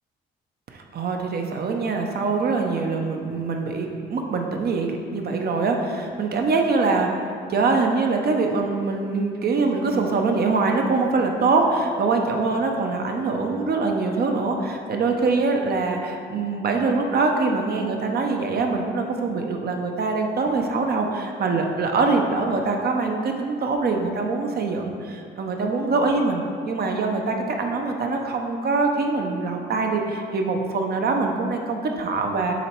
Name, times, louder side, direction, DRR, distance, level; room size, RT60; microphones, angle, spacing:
voice 1, 0.7-32.5, right 3 dB, 50° right, 3 dB, 0.8 m, -24 dB
7.0 x 3.1 x 4.5 m, 2.2 s
cardioid pair, 90°, 20 cm